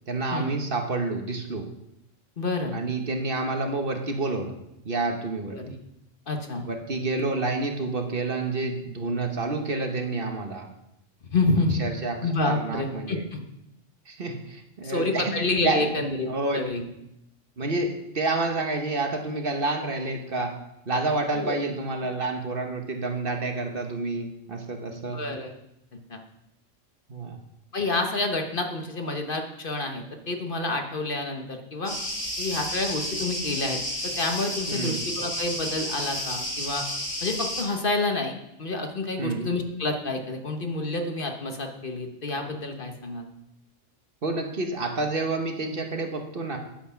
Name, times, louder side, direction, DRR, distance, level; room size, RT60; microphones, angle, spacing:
voice 1, 0.1-1.6 2.7-4.5 4.8-5.6 6.7-10.7 11.8-13.3 14.1-15.3 15.6-16.6 17.6-17.9 18.1-20.5 20.9-25.2 27.1-27.4 34.7-35.0 39.2-39.5 44.2-46.6, right 3 dB, 50° right, 4 dB, 1.3 m, -29 dB
voice 2, 2.4-2.8 5.5-5.7 6.3-6.7 11.3-11.8 12.2-13.4 14.8-16.8 21.3-21.6 25.1-25.5 26.1-26.2 27.7-32.0 32.4-33.8 34.2-36.8 37.2-43.2, left 2 dB, 45° left, 4 dB, 1.3 m, -28 dB
sound 1, 31.8-37.6, left 1 dB, 75° left, 4.0 m, -31 dB
10.5 x 7.9 x 5.7 m, 0.83 s
omnidirectional pair, 1.3 m